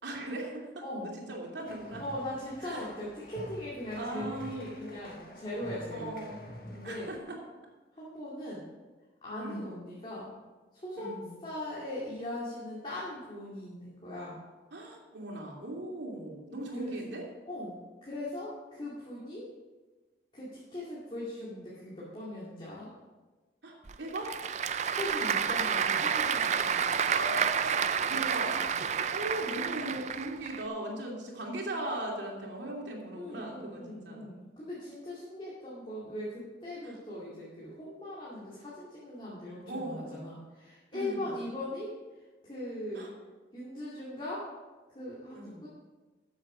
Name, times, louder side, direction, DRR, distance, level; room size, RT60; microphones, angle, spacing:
voice 1, 0.0-2.0 2.6-2.8 3.9-4.7 5.9-6.5 6.8-7.4 9.4-9.9 11.0-11.3 14.7-17.2 23.6-24.3 27.1-28.7 29.1-34.3 36.8-37.0 39.7-40.3 40.9-41.4 42.9-43.1 45.3-45.7, right 1 dB, 85° right, -1 dB, 2.7 m, -39 dB
sound 1, 1.7-7.2, equal, 50° left, 1.5 m, -47 dB
voice 2, 2.0-6.2 6.7-7.1 7.9-8.6 9.2-10.3 10.7-11.1 11.4-14.4 16.8-16.9 17.5-19.5 20.3-22.9 24.9-26.9 33.1-41.9 42.4-43.1 43.5-44.5 44.9-45.7, left 1 dB, 30° left, -8 dB, 2.4 m, -40 dB
Applause / Crowd, 23.9-30.6, right 7 dB, 40° right, 0.4 m, -30 dB
13.0 x 7.3 x 5.0 m, 1.2 s
head